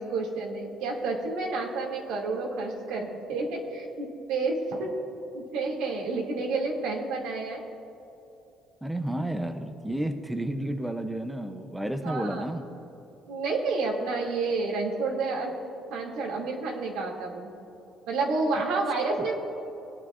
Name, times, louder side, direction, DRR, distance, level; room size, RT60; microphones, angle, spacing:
voice 1, 0.0-4.9 5.3-7.6 12.0-12.4 13.3-15.5 15.9-17.5 18.1-19.3, right 3 dB, 90° right, -1 dB, 2.2 m, -30 dB
voice 2, 8.8-12.6 19.2-19.3, right 1 dB, 5° right, 6 dB, 0.5 m, -31 dB
19.5 x 9.9 x 2.4 m, 2.8 s
cardioid pair, 145°, 0 cm